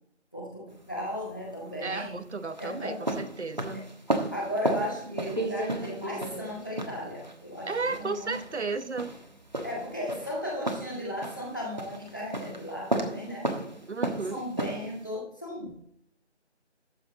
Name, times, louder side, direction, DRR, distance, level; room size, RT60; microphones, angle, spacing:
voice 1, 0.3-2.2 2.6-3.0 4.3-8.4 9.6-13.5 14.3-15.8, left 1 dB, 15° left, -3 dB, 1.8 m, -35 dB
sound 1, 0.7-15.1, right 1 dB, 40° right, 1.3 m, -34 dB
voice 2, 1.8-3.9 7.7-9.1 13.9-14.4, right 4 dB, 70° right, 13 dB, 1.0 m, -34 dB
12.5 x 8.3 x 3.9 m, 0.71 s
figure-of-eight pair, 180°, 35 cm